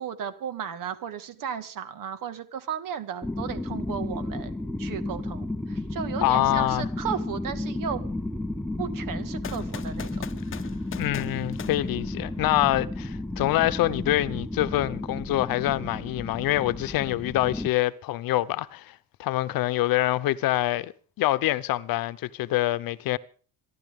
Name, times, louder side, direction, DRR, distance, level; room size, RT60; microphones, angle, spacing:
voice 1, 0.0-4.5 4.8-8.0 8.8-10.6, right 8 dB, 65° right, 2.1 m, -35 dB
sound 1, 3.2-17.7, left 1 dB, 5° left, 0.8 m, -33 dB
voice 2, 6.2-6.9 11.0-23.2, left 15 dB, 70° left, 0.9 m, -25 dB
sound 2, 9.4-12.6, left 9 dB, 35° left, 0.9 m, -41 dB
27.5 x 11.5 x 3.8 m
cardioid pair, 140°, 36 cm